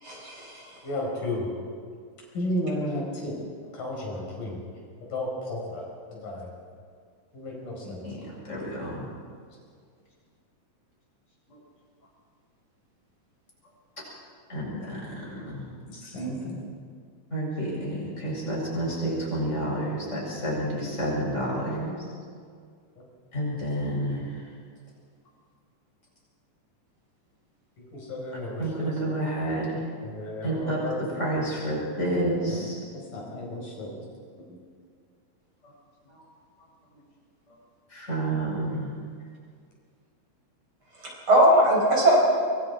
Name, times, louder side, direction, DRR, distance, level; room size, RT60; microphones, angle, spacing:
voice 1, 0.0-0.7 41.0-42.2, right 1 dB, 40° right, -2 dB, 5.4 m, -20 dB
voice 2, 0.8-1.5 2.3-3.4 3.7-4.6 5.1-6.5 7.3-8.0 15.9-16.6 27.8-29.0 30.0-31.0 32.4-32.7 33.1-33.9 34.5-34.6, left 1 dB, 85° left, -2 dB, 6.6 m, -33 dB
voice 3, 7.8-8.2 8.5-9.0 14.5-15.0 15.3-15.7 17.3-21.9 23.3-24.2 28.6-29.7 30.4-30.8 31.2-32.8 37.9-38.9, right 1 dB, 20° left, -5 dB, 7.9 m, -29 dB
25.0 x 24.5 x 4.7 m, 2.1 s
omnidirectional pair, 3.6 m